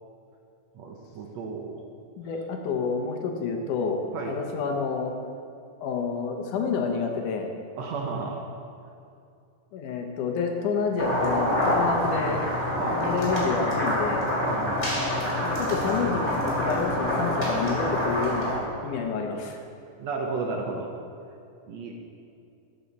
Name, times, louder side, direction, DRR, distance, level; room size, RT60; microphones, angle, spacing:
voice 1, 0.8-1.8 4.1-4.4 7.8-8.4 12.8-13.0 14.4-15.0 20.0-20.9 21.7-21.9, right 4 dB, 70° right, 1 dB, 1.7 m, -33 dB
voice 2, 2.2-5.1 5.8-7.5 9.7-12.4 12.9-14.2 15.4-18.6 18.8-19.6, left 5 dB, 80° left, 3 dB, 2.4 m, -29 dB
sound 1, 11.0-18.6, left 1 dB, 15° left, 2.3 m, -26 dB
12.5 x 8.2 x 4.1 m, 2.5 s
omnidirectional pair, 3.7 m